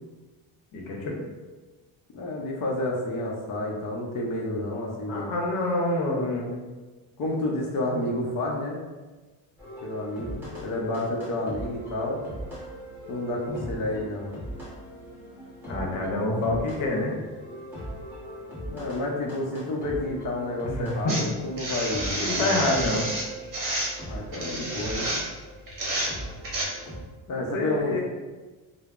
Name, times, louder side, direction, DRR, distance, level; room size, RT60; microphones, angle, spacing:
voice 1, 0.7-1.2 5.1-6.6 13.5-13.6 15.7-17.1 20.7-21.3 22.2-23.1 27.5-28.0, left 2 dB, 85° left, -1 dB, 0.8 m, -27 dB
voice 2, 2.1-5.3 7.2-8.8 9.8-12.2 13.1-14.3 18.7-22.7 24.1-25.1 27.3-28.0, left 1 dB, 45° left, -2 dB, 0.6 m, -30 dB
sound 1, 9.6-27.0, right 1 dB, 5° right, 1.0 m, -40 dB
sound 2, 21.1-26.6, right 1 dB, 45° right, 0.8 m, -30 dB
3.3 x 2.0 x 2.4 m, 1.2 s
cardioid pair, 120°, 46 cm